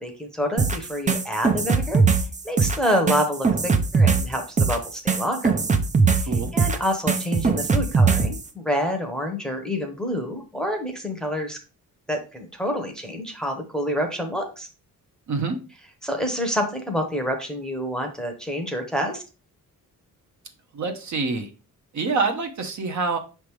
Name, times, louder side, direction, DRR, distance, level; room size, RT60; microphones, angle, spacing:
voice 1, 0.0-2.0 2.4-5.5 6.2-11.6 12.1-14.7 16.0-19.2, equal, ahead, 3 dB, 0.9 m, -27 dB
sound 1, 0.6-8.4, right 4 dB, 20° right, 0.5 m, -21 dB
voice 2, 20.7-21.5 21.9-23.2, right 4 dB, 50° right, 5 dB, 1.0 m, -26 dB
6.2 x 3.5 x 4.6 m, 0.33 s
wide cardioid pair, 165°, 35 cm